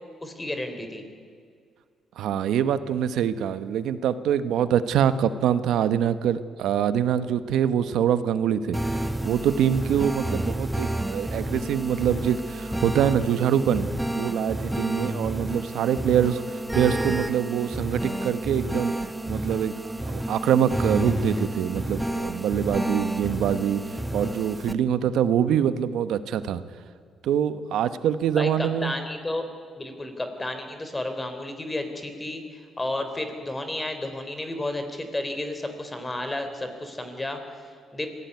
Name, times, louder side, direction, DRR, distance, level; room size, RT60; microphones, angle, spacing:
voice 1, 0.2-1.0 28.3-29.4 29.8-38.1, left 1 dB, 15° left, 7 dB, 3.8 m, -32 dB
voice 2, 2.2-8.8 9.2-13.9 14.2-18.9 19.3-19.7 20.0-23.8 24.1-26.6 27.2-28.9, right 9 dB, 80° right, 12 dB, 1.1 m, -24 dB
sound 1, 8.7-24.7, right 1 dB, 5° right, 1.1 m, -30 dB
25.0 x 16.5 x 9.5 m, 2.1 s
cardioid pair, 90°, 0 cm